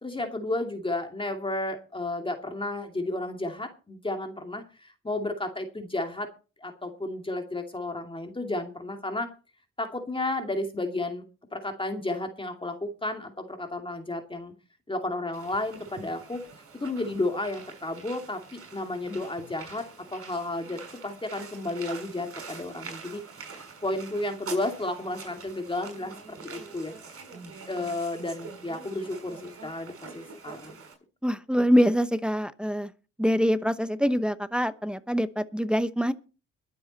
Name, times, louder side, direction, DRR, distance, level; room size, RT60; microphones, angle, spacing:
voice 1, 0.0-6.3 6.6-9.3 9.8-11.2 11.5-14.5 14.9-16.4 16.7-19.9 20.1-23.2 23.5-26.9 27.3-30.8, left 2 dB, 15° left, 4 dB, 2.5 m, -32 dB
sound 1, 15.3-30.9, right 5 dB, 50° right, 7.0 m, -45 dB
voice 2, 31.2-32.9 33.2-36.1, equal, 5° right, 12 dB, 1.0 m, -24 dB
22.0 x 7.9 x 4.2 m, 0.34 s
cardioid pair, 90°, 30 cm